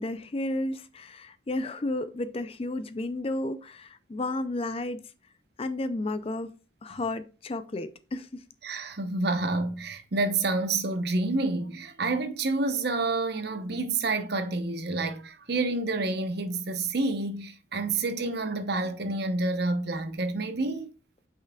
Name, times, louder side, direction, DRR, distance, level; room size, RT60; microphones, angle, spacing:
voice 1, 0.0-5.0 5.6-6.5 6.8-8.4, left 2 dB, 30° left, 0.4 m, -32 dB
voice 2, 8.6-20.9, right 3 dB, 55° right, 0.9 m, -28 dB
9.0 x 5.6 x 2.3 m
head